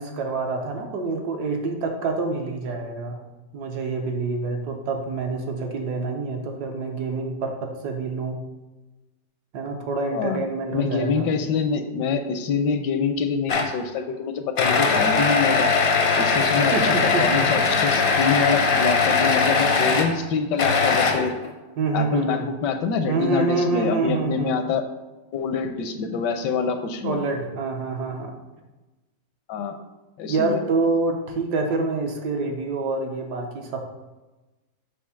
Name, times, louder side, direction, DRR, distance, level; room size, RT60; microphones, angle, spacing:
voice 1, 0.0-3.2 3.5-8.4 9.5-11.3 16.4-17.5 21.8-22.5 23.1-24.5 27.0-28.3 30.3-33.8, right 3 dB, 70° right, 2 dB, 1.4 m, -26 dB
voice 2, 10.7-15.7 16.2-21.3 21.9-24.8 25.3-27.2 29.5-29.8 30.2-30.6, left 5 dB, 80° left, 7 dB, 1.2 m, -25 dB
sound 1, 13.5-13.8 14.6-20.1 20.6-21.5, left 4 dB, 60° left, 0.6 m, -20 dB
7.0 x 2.6 x 5.7 m, 1.1 s
omnidirectional pair, 1.9 m